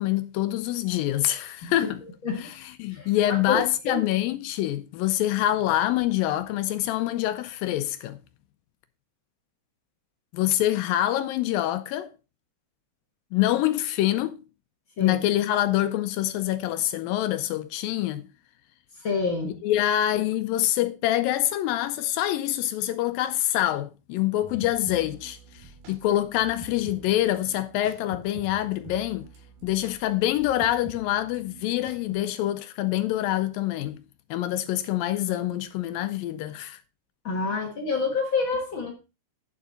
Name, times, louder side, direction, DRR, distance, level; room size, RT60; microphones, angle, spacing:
voice 1, 0.0-2.0 2.3-8.2 10.3-12.1 13.3-14.4 15.0-18.3 19.6-29.3 29.6-34.0 34.3-36.8, left 13 dB, 80° left, 2.3 m, -26 dB
voice 2, 2.9-3.6 3.9-4.0 15.0-15.2 19.0-19.6 37.2-38.9, left 4 dB, 55° left, 1.4 m, -28 dB
sound 1, 24.4-32.1, right 6 dB, 85° right, 4.2 m, -47 dB
9.2 x 7.2 x 4.0 m
omnidirectional pair, 4.2 m